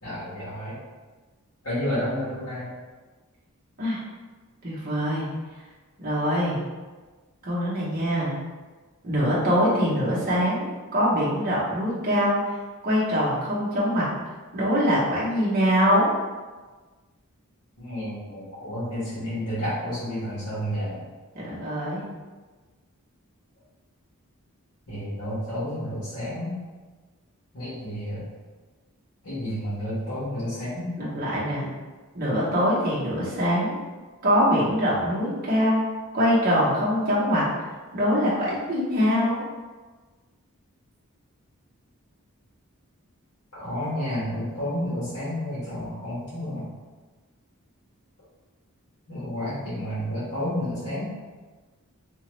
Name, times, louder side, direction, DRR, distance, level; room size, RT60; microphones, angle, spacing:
voice 1, 0.0-0.8 1.6-2.7 17.8-21.0 24.9-26.6 27.5-28.3 29.2-31.1 43.5-46.7 49.1-51.1, equal, 70° left, -13 dB, 1.3 m, -31 dB
voice 2, 4.6-5.3 6.0-6.6 7.4-8.3 9.0-10.7 10.9-12.5 12.8-14.1 14.5-16.1 21.3-22.0 31.0-31.7 32.1-33.8 34.2-35.9 36.1-37.5 37.9-39.4, equal, 45° right, -8 dB, 0.8 m, -23 dB
2.9 x 2.3 x 3.0 m, 1.3 s
head